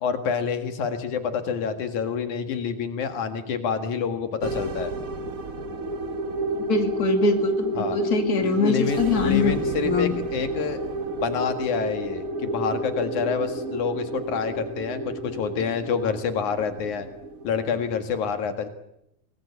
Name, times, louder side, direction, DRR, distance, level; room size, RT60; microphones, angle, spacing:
voice 1, 0.0-4.9 7.7-8.0 8.4-10.8 11.2-17.1 17.4-18.7, left 6 dB, 85° left, 8 dB, 3.3 m, -27 dB
sound 1, 4.4-18.0, right 2 dB, 45° right, 1.2 m, -30 dB
voice 2, 6.7-10.1, left 4 dB, 30° left, 6 dB, 2.8 m, -23 dB
25.0 x 20.0 x 8.5 m, 0.81 s
omnidirectional pair, 3.4 m